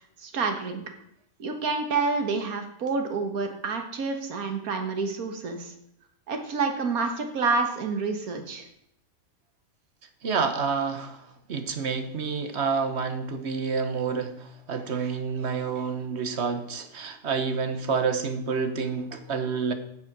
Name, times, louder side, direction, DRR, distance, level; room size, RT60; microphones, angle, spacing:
voice 1, 0.2-0.8 1.4-5.7 6.3-8.7, right 4 dB, 85° right, 5 dB, 1.9 m, -28 dB
voice 2, 10.2-19.7, right 5 dB, 55° right, 9 dB, 1.2 m, -29 dB
9.6 x 7.5 x 6.0 m, 0.75 s
omnidirectional pair, 1.5 m